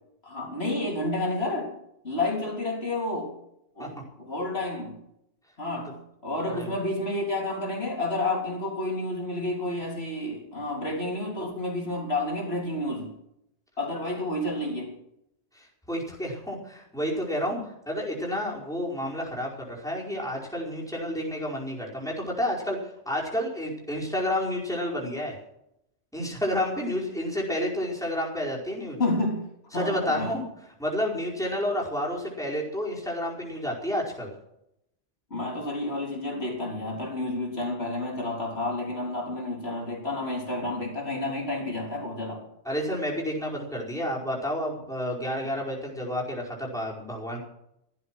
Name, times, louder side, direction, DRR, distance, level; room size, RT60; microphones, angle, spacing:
voice 1, 0.2-1.7 2.0-3.3 3.8-5.0 5.6-5.9 6.2-13.1 13.8-14.9 29.0-29.5 29.7-30.3 35.3-42.4, left 2 dB, 60° left, -1 dB, 3.8 m, -30 dB
voice 2, 15.5-17.6 17.9-25.4 26.1-29.0 29.7-30.4 30.8-34.3 42.6-47.4, left 1 dB, 5° left, -4 dB, 4.9 m, -30 dB
15.5 x 12.0 x 6.2 m, 0.78 s
omnidirectional pair, 1.2 m